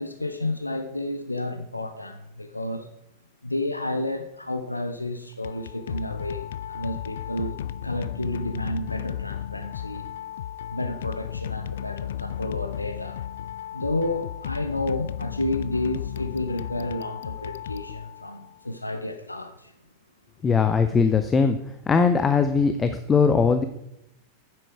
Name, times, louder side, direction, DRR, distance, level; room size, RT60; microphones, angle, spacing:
voice 1, 0.0-2.9 3.4-7.6 7.8-10.1 10.7-13.2 13.7-19.7, left 2 dB, 85° left, 0.7 m, -31 dB
sound 1, 5.3-18.5, left 10 dB, 60° left, 0.3 m, -34 dB
voice 2, 20.4-21.6 21.9-23.6, left 5 dB, 20° left, 0.7 m, -20 dB
9.2 x 7.7 x 4.7 m
figure-of-eight pair, 90°, 0 cm